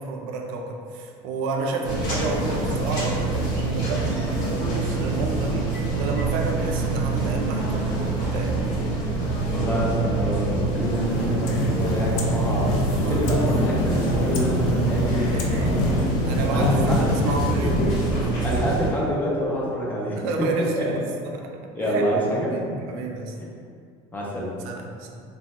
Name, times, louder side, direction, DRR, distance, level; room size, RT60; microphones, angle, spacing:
voice 1, 0.0-8.6 12.9-13.4 15.3-15.8 16.2-18.0 18.2-18.6 20.1-22.1 22.5-23.4 24.6-25.2, right 3 dB, 85° right, 2 dB, 0.4 m, -31 dB
sound 1, 1.8-18.9, right 3 dB, 60° left, 0.7 m, -25 dB
voice 2, 9.5-16.0 16.5-17.1 17.6-18.0 18.4-20.2 20.8-20.9 21.7-22.6 23.4-23.5 24.1-24.6, equal, 15° left, -4 dB, 0.4 m, -27 dB
sound 2, 10.7-19.0, left 2 dB, 85° left, 0.4 m, -27 dB
3.0 x 2.1 x 2.8 m, 2.2 s
cardioid pair, 175°, 13 cm